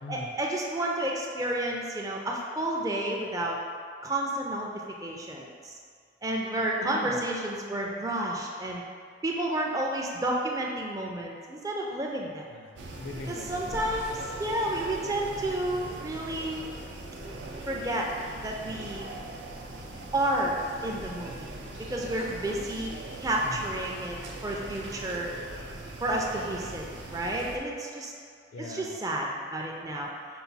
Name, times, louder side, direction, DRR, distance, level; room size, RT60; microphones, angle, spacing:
voice 1, 0.1-3.6 4.0-4.7 5.0-5.7 6.2-8.8 9.2-12.5 13.3-16.6 17.7-18.1 18.4-19.1 20.1-20.6 20.8-21.5 21.8-22.9 23.2-24.2 24.4-25.3 26.0-26.8 27.1-28.1 28.6-30.1, right 1 dB, 20° right, -1 dB, 0.4 m, -31 dB
voice 2, 6.8-7.2 12.5-13.7 23.4-23.7 28.2-28.9, left 2 dB, 75° left, 2 dB, 0.5 m, -41 dB
sound 1, 12.8-27.6, right 2 dB, 85° right, 0.5 m, -41 dB
5.6 x 2.2 x 4.0 m, 2.1 s
head